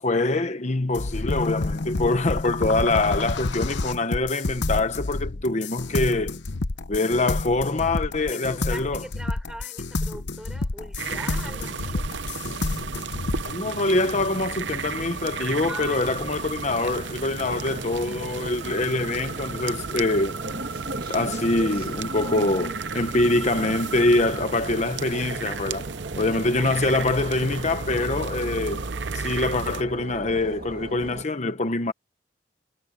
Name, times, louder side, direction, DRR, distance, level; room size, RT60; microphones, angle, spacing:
voice 1, 0.0-6.4 6.9-9.0 13.5-20.5 21.1-25.9 26.2-28.8 29.1-31.9, left 2 dB, 40° left, 1.0 m, -24 dB
sound 1, 0.9-13.5, left 2 dB, 75° left, 1.0 m, -29 dB
voice 2, 8.0-12.0 15.7-16.2 26.5-26.7, equal, 5° right, 4.7 m, -41 dB
sound 2, 11.0-29.8, right 5 dB, 80° right, 0.8 m, -33 dB
sound 3, 14.5-31.2, right 1 dB, 55° right, 2.1 m, -38 dB
head